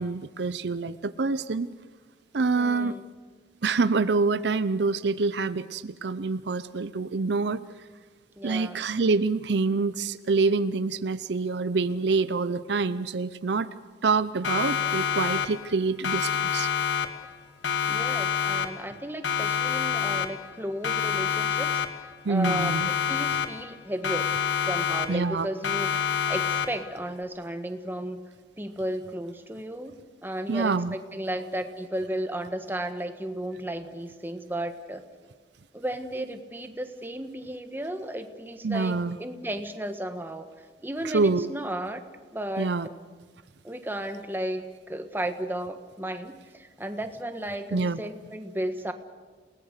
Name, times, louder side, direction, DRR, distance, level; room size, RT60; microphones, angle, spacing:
voice 1, 0.0-1.7 2.3-2.9 3.6-7.6 8.4-13.7 14.0-16.7 22.2-22.9 25.1-25.5 30.5-30.9 38.6-39.2 41.1-41.5 42.6-42.9 47.7-48.0, right 4 dB, 65° right, 14 dB, 0.6 m, -26 dB
voice 2, 2.6-3.1 8.4-8.8 17.9-21.8 22.3-22.7 23.1-24.3 24.6-28.2 28.6-29.9 30.2-35.0 35.7-40.5 40.8-42.0 42.3-42.7 43.6-48.9, right 1 dB, 10° right, 7 dB, 1.4 m, -34 dB
Siren, 14.4-15.8 16.0-17.4 17.6-19.0 19.2-20.6 20.8-22.2 22.4-23.8 24.0-25.4 25.6-27.0, left 8 dB, 85° left, 1.5 m, -27 dB
29.0 x 18.5 x 6.6 m, 1.4 s
head